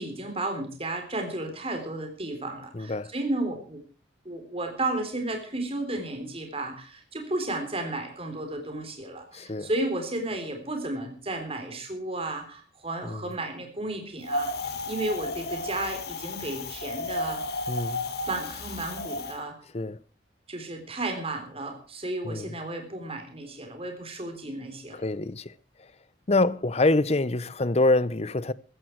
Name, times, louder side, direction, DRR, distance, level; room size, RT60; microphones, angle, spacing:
voice 1, 0.0-3.8 4.3-17.4 18.3-19.6 20.5-25.0, right 2 dB, 30° right, 3.7 m, -33 dB
voice 2, 2.7-3.1 9.3-9.7 13.0-13.3 17.7-18.1 19.7-20.0 22.2-22.5 24.9-25.5 25.8-25.9 26.3-28.5, left 2 dB, 35° left, 0.7 m, -26 dB
Wind, 14.2-19.3, left 2 dB, 60° left, 2.1 m, -33 dB
15.0 x 14.5 x 4.6 m
head